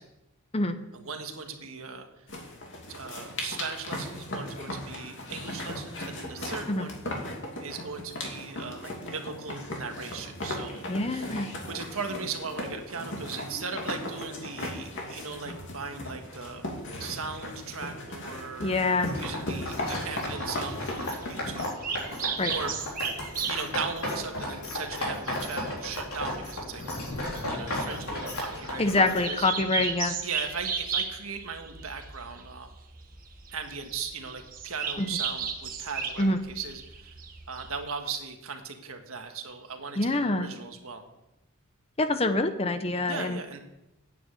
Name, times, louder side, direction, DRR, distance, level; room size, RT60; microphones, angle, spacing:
voice 1, 0.9-2.3 2.9-7.0 7.6-11.4 11.7-16.7 17.0-18.8 19.2-21.8 22.5-22.7 23.5-26.8 27.5-29.5 30.2-32.7 33.5-37.2 37.5-41.0 43.1-43.6, right 5 dB, 65° right, 5 dB, 1.6 m, -38 dB
sound 1, 2.3-21.6, left 1 dB, 55° left, 2.7 m, -37 dB
voice 2, 10.9-11.5 18.6-19.1 22.4-22.5 28.8-30.2 35.0-35.1 36.2-36.4 40.0-40.5 42.0-43.4, left 2 dB, 25° left, 9 dB, 0.8 m, -26 dB
sound 2, 19.0-29.2, left 1 dB, 75° left, 4.1 m, -35 dB
sound 3, 19.7-37.8, right 6 dB, 40° right, 1.5 m, -37 dB
9.4 x 9.1 x 7.8 m, 0.92 s
head